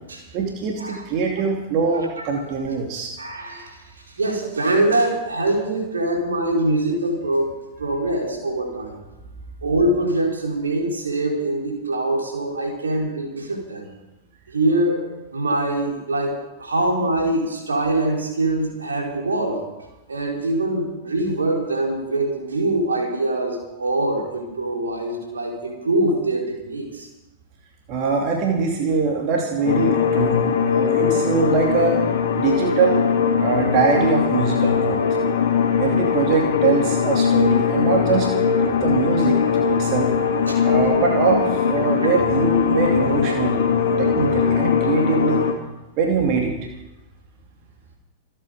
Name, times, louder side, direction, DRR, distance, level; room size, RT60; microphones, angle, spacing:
voice 1, 0.3-3.1 27.9-30.5 30.7-32.0 32.3-33.0 33.4-35.0 35.8-38.3 38.7-40.1 40.6-43.7 44.0-45.4 46.0-46.6, right 5 dB, 40° right, 1 dB, 2.8 m, -22 dB
voice 2, 3.2-3.8 4.2-7.5 7.8-9.0 9.6-13.9 14.5-15.0 15.3-19.6 20.1-27.1 40.5-40.6, right 1 dB, 75° right, 0 dB, 4.2 m, -23 dB
sound 1, 29.6-45.5, left 6 dB, 60° left, 2.3 m, -20 dB
26.5 x 9.2 x 5.2 m, 1.0 s
figure-of-eight pair, 95°, 0 cm